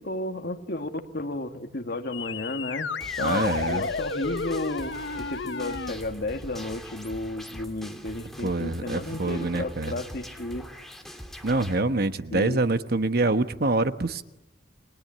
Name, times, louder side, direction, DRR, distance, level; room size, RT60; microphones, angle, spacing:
voice 1, 0.0-2.9 3.2-10.7 12.3-12.6, left 2 dB, 60° left, 6 dB, 2.0 m, -33 dB
sound 1, 2.1-5.9, left 4 dB, 85° left, 1.1 m, -32 dB
sound 2, 3.0-11.7, equal, ahead, 2.8 m, -43 dB
voice 2, 3.2-3.8 8.4-10.0 11.4-14.2, right 2 dB, 60° right, 10 dB, 1.2 m, -25 dB
29.5 x 22.5 x 8.8 m, 0.92 s
head